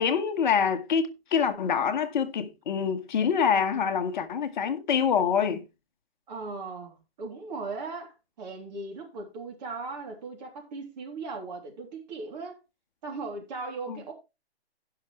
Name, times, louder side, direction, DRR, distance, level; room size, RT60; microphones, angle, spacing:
voice 1, 0.0-5.6 13.9-14.0, left 7 dB, 45° left, 1.2 m, -26 dB
voice 2, 6.3-12.6 13.0-14.1, right 3 dB, 40° right, 3.1 m, -38 dB
17.0 x 5.9 x 3.1 m
hypercardioid pair, 155°, 32 cm